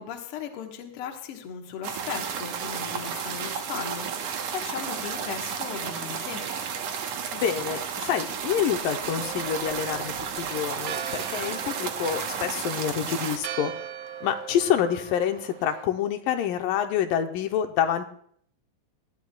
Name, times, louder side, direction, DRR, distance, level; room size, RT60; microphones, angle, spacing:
voice 1, 0.0-6.4, left 7 dB, 55° left, 3 dB, 1.6 m, -37 dB
sound 1, 1.8-13.4, right 7 dB, 65° right, 1.7 m, -32 dB
voice 2, 7.3-13.7 14.2-18.1, left 9 dB, 85° left, 6 dB, 2.3 m, -27 dB
Church bell, 9.2-15.9, right 8 dB, 85° right, 1.6 m, -40 dB
19.0 x 12.5 x 2.2 m, 0.64 s
omnidirectional pair, 4.0 m